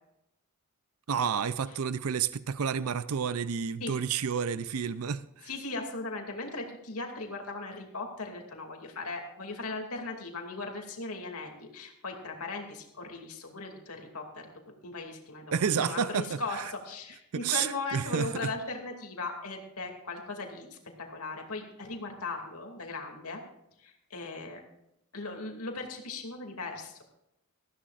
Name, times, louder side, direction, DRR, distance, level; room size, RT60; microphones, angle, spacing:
voice 1, 1.1-5.5 15.5-16.7 17.3-18.5, right 7 dB, 75° right, 0.5 m, -30 dB
voice 2, 5.4-23.4 23.8-24.6 25.1-27.0, left 3 dB, 80° left, 2.5 m, -38 dB
20.0 x 14.5 x 2.5 m
head